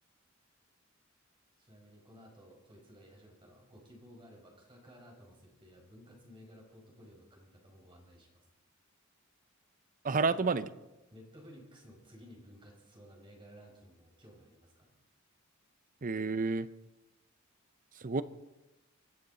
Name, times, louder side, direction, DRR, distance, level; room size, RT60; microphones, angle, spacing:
voice 1, 1.6-8.4 10.1-10.6 11.1-14.9, equal, 25° right, 0 dB, 5.0 m, -56 dB
voice 2, 10.0-10.7 16.0-16.7 17.9-18.2, right 4 dB, 40° right, 14 dB, 0.6 m, -30 dB
24.5 x 14.0 x 4.1 m, 1.0 s
head